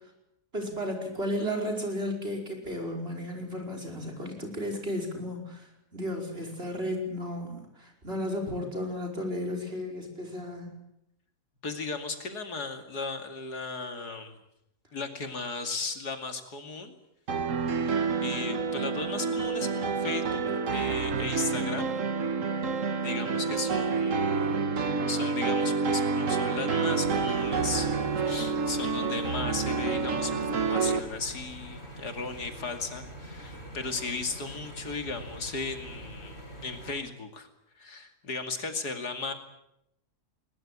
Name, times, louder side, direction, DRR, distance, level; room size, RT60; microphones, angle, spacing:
voice 1, 0.5-10.7, equal, 35° right, 2 dB, 5.6 m, -34 dB
voice 2, 11.6-14.4 14.9-17.0 17.6-17.9 18.2-21.9 22.7-24.6 25.1-37.5 37.8-39.3, left 4 dB, 85° left, 6 dB, 3.0 m, -36 dB
sound 1, 17.3-31.0, right 4 dB, 55° right, 1.6 m, -28 dB
sound 2, 27.0-36.9, right 1 dB, 40° left, 6.9 m, -44 dB
21.5 x 21.0 x 8.8 m, 0.81 s
omnidirectional pair, 1.7 m